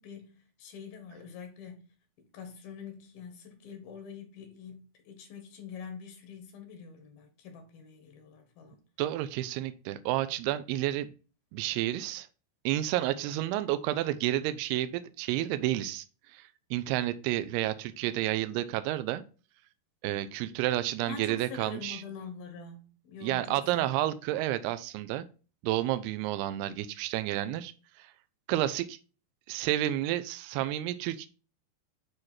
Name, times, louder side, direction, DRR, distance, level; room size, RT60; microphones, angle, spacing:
voice 1, 0.0-1.9 2.2-8.8 21.0-24.1, left 6 dB, 70° left, 2.8 m, -45 dB
voice 2, 9.0-11.1 11.5-12.3 12.7-16.1 16.3-19.2 20.0-22.0 23.2-25.3 25.6-27.7 28.0-28.1 28.5-29.0 29.5-31.3, right 14 dB, 85° right, 2.6 m, -30 dB
8.5 x 3.2 x 4.3 m
omnidirectional pair, 4.6 m